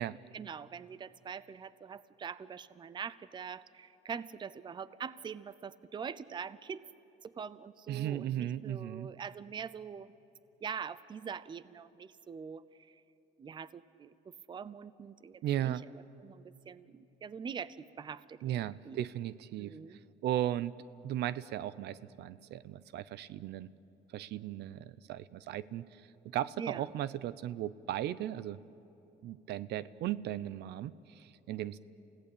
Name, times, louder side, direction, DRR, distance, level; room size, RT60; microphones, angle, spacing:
voice 1, 0.3-6.8 7.2-10.1 10.6-13.0 13.4-19.0 19.6-20.0 26.6-26.9, right 6 dB, 25° right, 17 dB, 0.6 m, -44 dB
voice 2, 7.9-9.1 15.4-15.9 18.4-19.7 20.2-20.8 21.0-23.7 24.1-26.0 26.3-28.6 29.2-31.8, right 12 dB, 70° right, 17 dB, 0.7 m, -36 dB
28.5 x 17.0 x 8.5 m, 3.0 s
cardioid pair, 125°, 18 cm